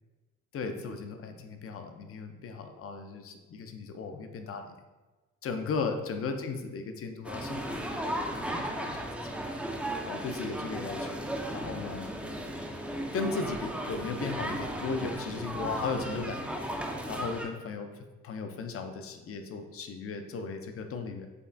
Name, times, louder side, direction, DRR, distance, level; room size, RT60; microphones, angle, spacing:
voice 1, 0.5-4.7 5.4-9.1 10.1-11.2 11.5-12.1 13.1-16.4 17.1-17.9 18.2-21.3, left 4 dB, 50° left, 6 dB, 0.5 m, -36 dB
sound 1, 7.2-17.5, right 1 dB, 5° right, 0.4 m, -35 dB
5.1 x 2.4 x 2.5 m, 1.2 s
cardioid pair, 90°, 30 cm